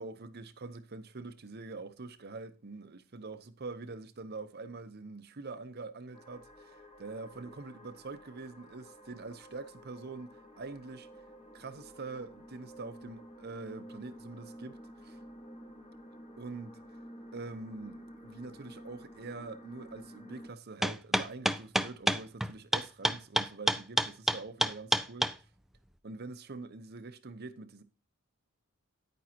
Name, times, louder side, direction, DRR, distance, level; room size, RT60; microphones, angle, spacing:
voice 1, 0.0-11.1 11.5-15.2 16.4-16.8 17.3-25.4 26.0-27.8, right 3 dB, 50° right, 0.8 m, -44 dB
sound 1, 6.1-20.5, equal, 30° left, 1.4 m, -51 dB
sound 2, 20.8-25.3, right 1 dB, ahead, 0.3 m, -27 dB
9.9 x 9.3 x 2.9 m
head